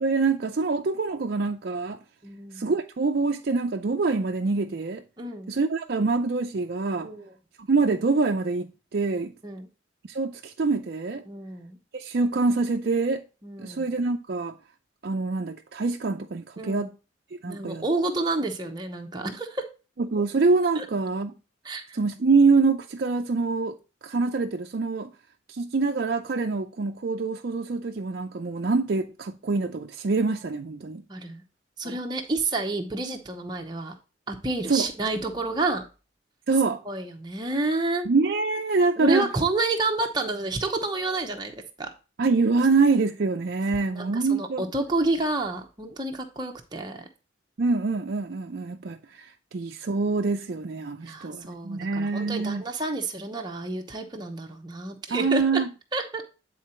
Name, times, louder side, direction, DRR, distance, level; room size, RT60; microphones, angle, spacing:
voice 1, 0.0-2.0 2.5-5.0 5.5-7.1 7.6-9.3 10.1-11.2 11.9-13.2 13.6-14.6 15.0-16.9 17.4-17.8 20.0-21.3 21.9-23.8 24.0-25.1 25.5-31.0 31.8-32.0 34.7-34.9 36.5-36.8 38.1-39.3 42.2-44.7 47.6-52.6 55.1-55.7, right 4 dB, 55° right, 0.5 m, -25 dB
voice 2, 2.2-2.7 5.2-5.5 7.0-7.3 9.4-9.7 11.3-11.8 13.4-13.9 16.6-16.9 17.5-19.6 20.7-20.8 21.6-22.0 31.1-31.4 31.8-33.9 34.3-35.9 36.9-38.1 39.0-41.9 44.0-47.1 51.0-55.6 55.9-56.2, right 2 dB, 20° right, 0.9 m, -29 dB
9.2 x 3.9 x 4.4 m
head